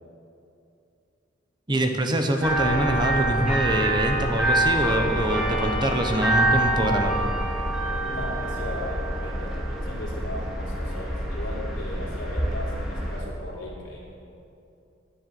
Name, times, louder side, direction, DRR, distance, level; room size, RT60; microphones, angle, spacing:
voice 1, 1.7-7.1, right 1 dB, 25° right, 4 dB, 1.0 m, -24 dB
sound 1, 2.4-13.2, right 1 dB, ahead, 2.0 m, -26 dB
voice 2, 8.0-14.1, left 1 dB, 75° left, -4 dB, 3.6 m, -37 dB
11.5 x 10.5 x 7.6 m, 2.7 s
head